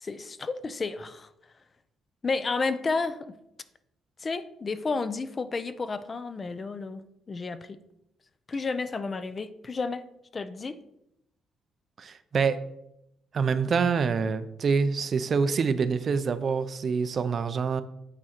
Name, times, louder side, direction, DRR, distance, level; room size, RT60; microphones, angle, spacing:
voice 1, 0.0-1.3 2.2-3.3 4.2-7.8 8.5-10.0 10.3-10.8, left 4 dB, 35° left, 13 dB, 0.5 m, -31 dB
voice 2, 12.0-12.6 13.3-17.8, right 5 dB, 50° right, 12 dB, 0.5 m, -26 dB
8.8 x 3.7 x 4.3 m, 0.82 s
cardioid pair, 90°, 0 cm